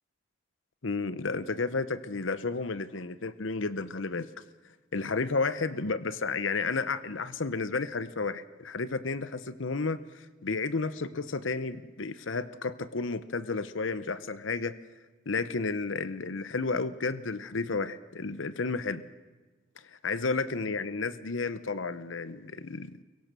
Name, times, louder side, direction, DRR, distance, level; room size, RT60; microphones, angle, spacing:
voice 1, 0.8-4.3 4.9-14.7 15.3-19.0 19.8-22.9, left 4 dB, 70° left, 13 dB, 0.9 m, -32 dB
29.5 x 23.5 x 6.8 m, 1.3 s
head